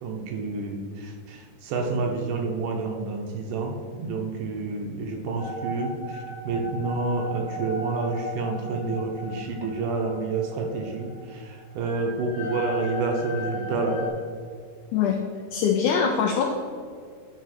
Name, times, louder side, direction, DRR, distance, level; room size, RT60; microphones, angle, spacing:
voice 1, 0.0-14.1, right 3 dB, 75° right, 2 dB, 2.2 m, -29 dB
sound 1, 5.4-14.1, equal, 65° left, 2.3 m, -37 dB
voice 2, 15.5-16.5, left 7 dB, 85° left, 1 dB, 1.8 m, -22 dB
9.3 x 4.0 x 4.2 m, 2.1 s
omnidirectional pair, 4.0 m